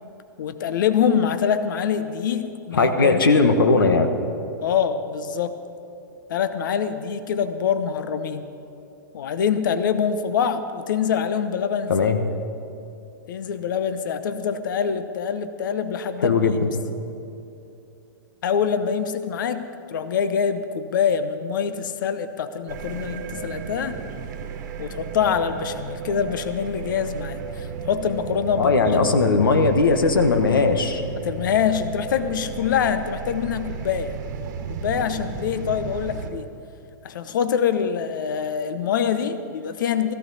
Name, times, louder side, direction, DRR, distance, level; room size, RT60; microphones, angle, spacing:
voice 1, 0.4-3.4 4.6-5.6 6.3-8.5 9.1-11.9 13.3-16.4 18.4-24.0 24.8-28.8 31.2-34.1 34.7-36.5 37.0-40.1, left 7 dB, 70° left, 11 dB, 0.8 m, -25 dB
voice 2, 2.8-4.1 11.9-12.2 16.2-16.7 28.6-31.0, left 4 dB, 85° left, 7 dB, 1.3 m, -18 dB
sound 1, 22.7-36.3, right 6 dB, 60° right, 1.3 m, -34 dB
17.0 x 14.5 x 4.1 m, 2.8 s
hypercardioid pair, 120°, 11 cm